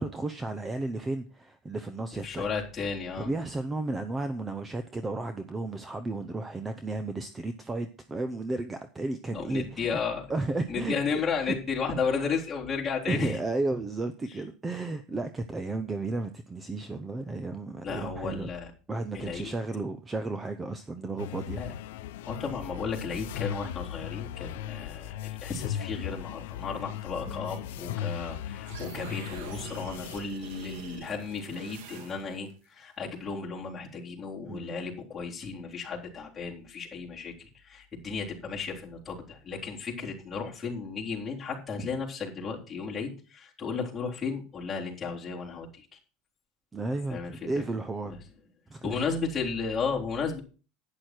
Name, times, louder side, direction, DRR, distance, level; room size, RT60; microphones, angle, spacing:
voice 1, 0.0-2.5 3.2-9.9 10.3-11.6 13.1-18.5 18.9-21.6 27.3-27.5 34.4-34.7 46.7-48.1 48.7-49.0, right 2 dB, 10° right, 9 dB, 0.7 m, -33 dB
voice 2, 2.2-3.3 9.3-10.3 10.7-13.4 17.8-18.7 19.1-19.5 21.6-21.7 22.3-45.9 47.1-47.7 48.1-48.2 48.8-50.4, left 5 dB, 15° left, -4 dB, 3.8 m, -34 dB
sound 1, 21.2-30.2, left 11 dB, 85° left, 0.7 m, -37 dB
sound 2, 28.6-32.5, right 7 dB, 70° right, 1.8 m, -45 dB
11.5 x 9.7 x 4.5 m, 0.36 s
supercardioid pair, 160°, 0 cm